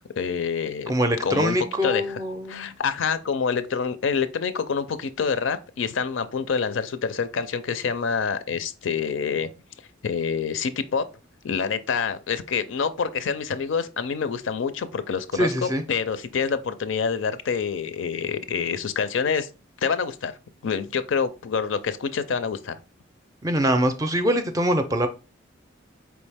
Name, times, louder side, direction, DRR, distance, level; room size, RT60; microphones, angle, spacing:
voice 1, 0.2-0.9 1.2-1.6 1.8-2.2 2.5-9.5 10.0-11.0 11.4-19.5 19.8-20.4 20.6-22.8, left 6 dB, 80° left, 0.5 m, -27 dB
voice 2, 0.9-2.7 15.3-15.8 23.4-25.1, equal, 20° right, 0.4 m, -23 dB
4.6 x 3.1 x 3.4 m
head